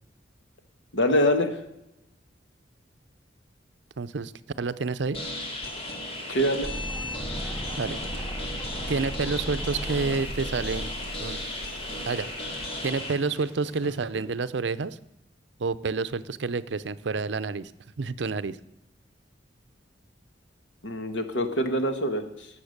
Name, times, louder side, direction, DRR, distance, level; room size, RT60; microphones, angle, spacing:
voice 1, 0.9-1.6 6.3-6.7 20.8-22.5, equal, 85° left, 7 dB, 1.6 m, -25 dB
voice 2, 4.0-4.3 4.6-5.2 7.8-8.0 8.9-10.9 11.2-11.4 12.1-12.3 12.8-15.0 15.6-17.7 18.0-18.6, right 4 dB, 70° right, 15 dB, 0.6 m, -29 dB
sound 1, 5.1-13.1, left 1 dB, 30° left, 2.3 m, -35 dB
sound 2, 6.6-12.6, equal, 5° left, 1.0 m, -37 dB
sound 3, 9.4-14.3, left 1 dB, 55° left, 3.6 m, -49 dB
19.0 x 7.2 x 6.6 m, 0.87 s
head